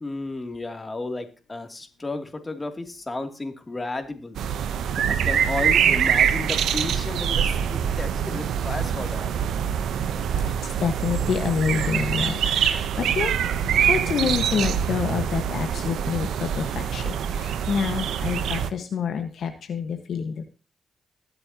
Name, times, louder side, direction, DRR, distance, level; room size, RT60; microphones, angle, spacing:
voice 1, 0.0-4.4 5.1-9.3, left 2 dB, 25° left, 6 dB, 2.9 m, -33 dB
sound 1, 4.3-18.7, right 8 dB, 80° right, 0.9 m, -24 dB
voice 2, 10.6-12.4 12.7-13.3 13.6-20.4, left 6 dB, 70° left, 6 dB, 1.5 m, -27 dB
21.5 x 7.8 x 3.0 m, 0.36 s
supercardioid pair, 55°, 0 cm